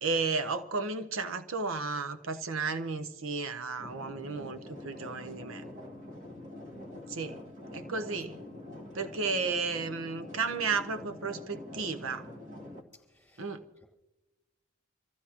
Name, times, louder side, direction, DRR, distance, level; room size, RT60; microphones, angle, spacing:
voice 1, 0.0-5.6 6.9-7.4 7.7-8.3 8.9-12.3 13.4-13.6, right 4 dB, 80° right, 9 dB, 0.9 m, -33 dB
sound 1, 3.8-12.8, left 1 dB, 40° right, 2.2 m, -45 dB
voice 2, 12.9-13.8, left 2 dB, 5° left, -3 dB, 4.9 m, -63 dB
27.5 x 15.0 x 2.9 m, 1.0 s
head